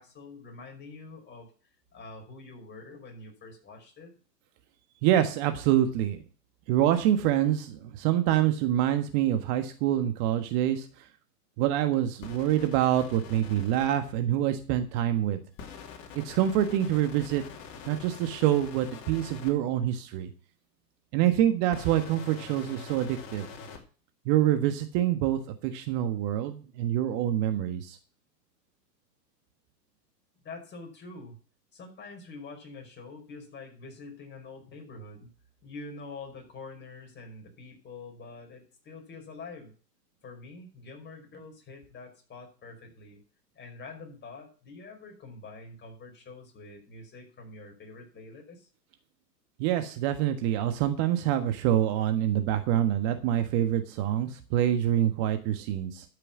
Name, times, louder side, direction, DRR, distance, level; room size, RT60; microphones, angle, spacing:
voice 1, 0.0-1.5 1.9-4.1 30.4-31.4 31.7-35.3 35.6-39.7 40.2-43.2 43.5-48.7, left 3 dB, 20° left, 2 dB, 5.3 m, -46 dB
voice 2, 5.0-6.2 6.7-10.9 11.6-15.4 16.1-17.4 17.9-20.3 21.1-23.5 24.2-28.0 49.6-56.0, right 11 dB, 40° right, 7 dB, 1.5 m, -26 dB
sound 1, 12.2-13.9 15.6-19.5 21.7-23.8, left 5 dB, 40° left, 3.2 m, -44 dB
12.5 x 6.8 x 6.1 m, 0.38 s
hypercardioid pair, 110°, 50 cm